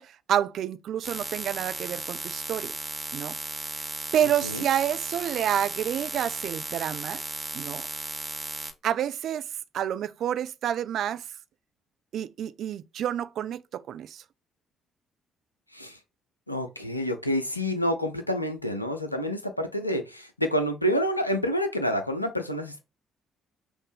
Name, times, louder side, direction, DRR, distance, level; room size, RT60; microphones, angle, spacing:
voice 1, 0.0-2.7 3.1-3.4 4.1-7.2 7.5-7.9 8.8-9.5 9.7-11.3 12.1-14.2, right 10 dB, 55° right, 0.4 m, -29 dB
sound 1, 1.0-8.7, right 2 dB, 25° right, 1.3 m, -35 dB
voice 2, 16.5-22.8, equal, 90° left, 0.5 m, -28 dB
6.2 x 2.5 x 3.3 m
figure-of-eight pair, 45°, 0 cm